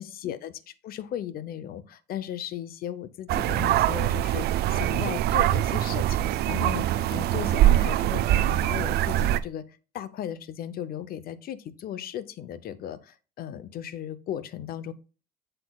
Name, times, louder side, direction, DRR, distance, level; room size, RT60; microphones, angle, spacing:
voice 1, 0.0-9.6 9.9-14.9, left 10 dB, 60° left, 15 dB, 0.7 m, -36 dB
sound 1, 3.3-9.4, right 13 dB, 70° right, 0.5 m, -23 dB
7.8 x 6.8 x 2.3 m, 0.35 s
cardioid pair, 110°, 17 cm